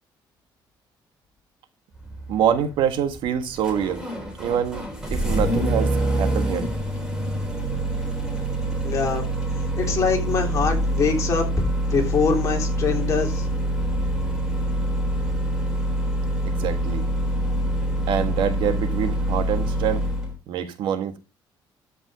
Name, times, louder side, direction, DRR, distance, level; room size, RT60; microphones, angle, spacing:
Engine starting, 2.0-20.3, right 1 dB, 5° right, 3.7 m, -25 dB
voice 1, 2.3-4.0 4.4-4.8 5.1-6.7 16.4-17.0 18.1-20.0 20.5-21.2, right 9 dB, 75° right, 1.5 m, -25 dB
voice 2, 8.8-9.2 9.8-11.5 11.9-13.4, left 5 dB, 40° left, 3.4 m, -23 dB
13.0 x 5.5 x 5.1 m
cardioid pair, 150°, 8 cm